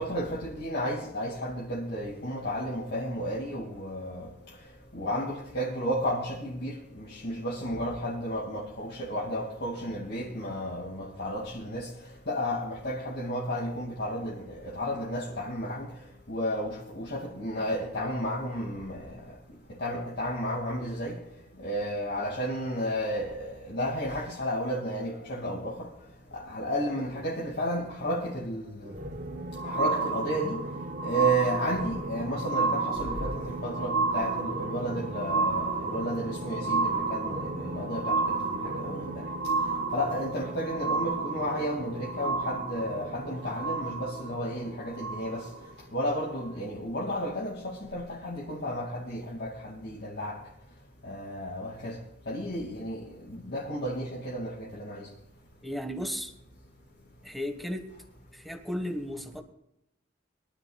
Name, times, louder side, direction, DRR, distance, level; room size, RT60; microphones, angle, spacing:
voice 1, 0.0-4.3 4.9-11.9 12.3-15.9 16.3-19.2 19.8-21.2 21.6-25.9 26.3-28.9 29.6-30.6 31.0-39.2 39.9-45.5 45.9-50.4 51.0-52.0 52.3-55.1, equal, 60° left, 2.3 m, -32 dB
sound 1, 28.8-45.7 46.4-46.5, right 3 dB, 45° right, 1.0 m, -31 dB
voice 2, 55.6-56.3 57.2-57.8 58.3-59.4, equal, ahead, 1.5 m, -34 dB
23.0 x 12.0 x 2.4 m
head